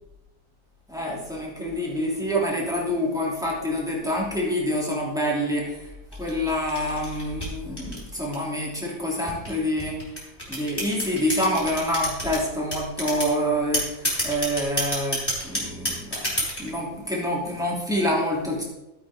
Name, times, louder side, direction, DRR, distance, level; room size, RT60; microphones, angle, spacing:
voice 1, 0.9-5.9 6.2-10.0 10.5-18.6, equal, ahead, -5 dB, 3.1 m, -27 dB
sound 1, 6.1-8.6 9.3-12.4 12.7-13.3 13.7-16.7, equal, 15° left, 4.8 m, -28 dB
15.0 x 8.5 x 3.7 m, 0.95 s
omnidirectional pair, 1.4 m